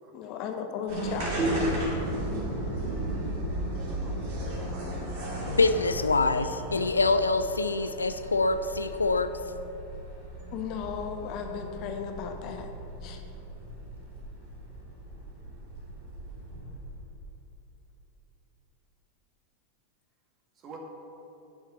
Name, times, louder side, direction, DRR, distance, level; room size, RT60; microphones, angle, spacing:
voice 1, 0.1-1.4 10.5-12.7 13.0-13.2, left 7 dB, 40° left, 5 dB, 0.8 m, -35 dB
sound 1, 0.9-17.1, right 1 dB, 50° right, 2.3 m, -36 dB
sound 2, 1.4-4.8, equal, 10° right, 1.1 m, -35 dB
voice 2, 3.7-4.2 4.5-5.3 20.5-20.8, right 3 dB, 30° right, 0 dB, 1.6 m, -47 dB
voice 3, 5.4-9.3, left 3 dB, 80° left, 10 dB, 0.3 m, -25 dB
9.9 x 5.8 x 5.5 m, 2.9 s
figure-of-eight pair, 90°, 0 cm